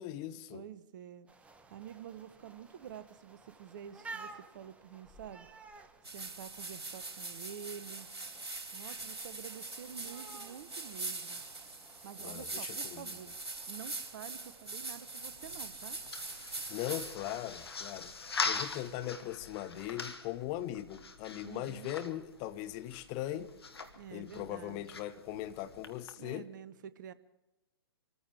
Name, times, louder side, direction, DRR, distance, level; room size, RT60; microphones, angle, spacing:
voice 1, 0.0-0.6 12.2-13.0 16.7-18.1 18.4-23.5 24.1-26.5, left 13 dB, 30° left, 1.0 m, -39 dB
voice 2, 0.5-1.3 1.7-5.5 6.0-8.1 8.7-11.5 12.0-13.3 13.7-16.0 21.4-22.0 23.9-24.8 26.2-27.1, right 9 dB, 50° right, 1.0 m, -48 dB
sound 1, 1.3-18.8, right 3 dB, 10° right, 1.2 m, -55 dB
sound 2, 6.0-17.2, right 3 dB, 80° right, 3.8 m, -43 dB
sound 3, 15.2-26.1, left 4 dB, 70° left, 1.9 m, -42 dB
26.5 x 14.5 x 3.4 m
figure-of-eight pair, 120°, 13 cm